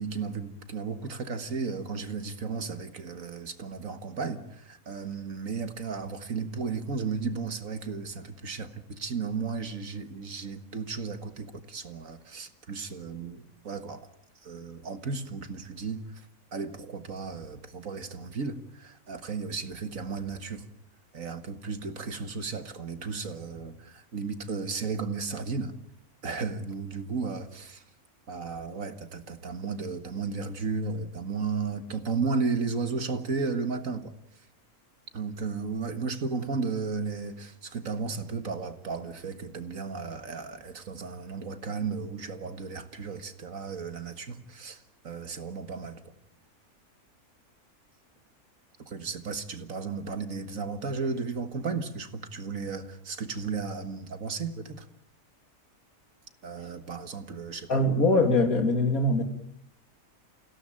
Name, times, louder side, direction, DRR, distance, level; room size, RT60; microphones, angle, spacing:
voice 1, 0.0-14.1 14.4-16.3 16.5-20.6 21.1-25.7 26.2-27.8 28.3-34.1 35.1-46.0 48.9-54.9 56.4-57.8, right 4 dB, 65° right, 2.1 m, -34 dB
voice 2, 57.7-59.2, left 2 dB, 70° left, 3.1 m, -22 dB
28.5 x 17.0 x 8.8 m
omnidirectional pair, 1.6 m